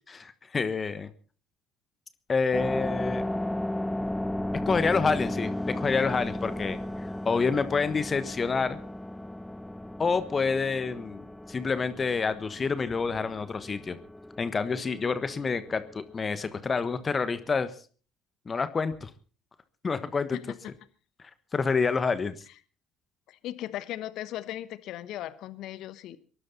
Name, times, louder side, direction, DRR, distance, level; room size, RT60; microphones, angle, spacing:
voice 1, 0.1-1.1 2.3-3.3 4.6-6.8 7.2-8.8 10.0-14.0 14.4-17.7 18.5-19.1 19.8-20.4 21.5-22.4, left 4 dB, 30° left, 12 dB, 1.3 m, -28 dB
sound 1, 2.5-17.5, left 1 dB, 5° left, 0.6 m, -35 dB
voice 2, 23.3-26.2, left 13 dB, 60° left, 15 dB, 1.1 m, -37 dB
23.0 x 11.5 x 4.1 m, 0.39 s
hypercardioid pair, 55°, 0 cm